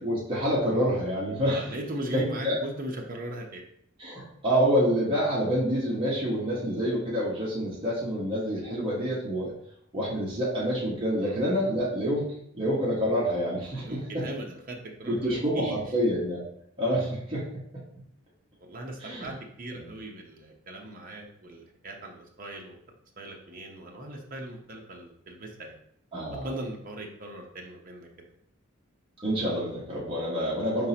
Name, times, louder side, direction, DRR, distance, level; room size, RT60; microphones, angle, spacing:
voice 1, 0.0-1.7 2.1-2.5 4.0-9.5 9.9-12.3 12.5-14.2 15.1-16.4 16.8-17.5 17.7-17.8 19.0-19.3 19.7-19.9 26.1-26.5 29.2-30.9, equal, 25° right, -8 dB, 1.1 m, -27 dB
voice 2, 1.4-3.6 11.2-11.4 13.7-15.8 18.6-22.7 23.2-25.8 26.3-28.1, right 1 dB, 45° right, 1 dB, 0.8 m, -39 dB
4.9 x 3.7 x 2.8 m, 0.70 s
head